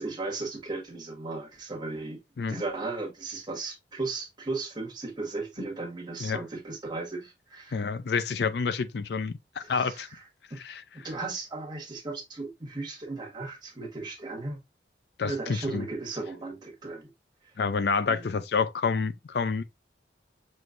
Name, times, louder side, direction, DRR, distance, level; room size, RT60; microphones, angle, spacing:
voice 1, 0.0-2.2 2.5-7.8 9.6-10.2 10.5-10.6 10.9-14.6 15.2-17.1 18.1-18.3, right 3 dB, 25° right, 1.5 m, -36 dB
voice 2, 7.7-10.1 10.6-10.8 15.2-15.8 17.6-19.6, left 5 dB, 65° left, 0.4 m, -28 dB
6.2 x 3.1 x 2.5 m
head